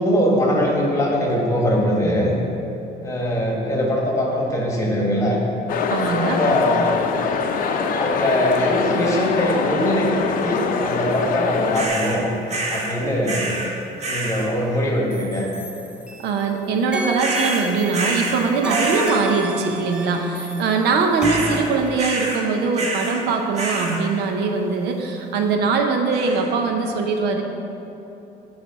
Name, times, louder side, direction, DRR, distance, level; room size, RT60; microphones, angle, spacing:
voice 1, 0.0-2.3 3.0-5.4 6.2-7.0 7.9-12.3 12.7-13.5 14.0-15.5 21.3-21.4, equal, 20° left, -2 dB, 1.4 m, -22 dB
sound 1, 5.7-11.9, left 5 dB, 55° left, 0.6 m, -23 dB
voice 2, 5.9-6.4 16.2-27.4, right 4 dB, 80° right, 4 dB, 0.7 m, -22 dB
sound 2, 11.7-12.2 12.5-13.0 13.2-13.7 14.0-14.5 17.2-18.4 18.7-19.2 21.2-21.7 22.0-22.4 22.7-23.2 23.6-24.0 26.1-26.5, right 2 dB, 40° right, 1.1 m, -26 dB
sound 3, 15.1-16.5 16.9-22.0, right 2 dB, 5° right, 0.4 m, -31 dB
8.1 x 3.3 x 5.9 m, 3.0 s
cardioid pair, 110°, 17 cm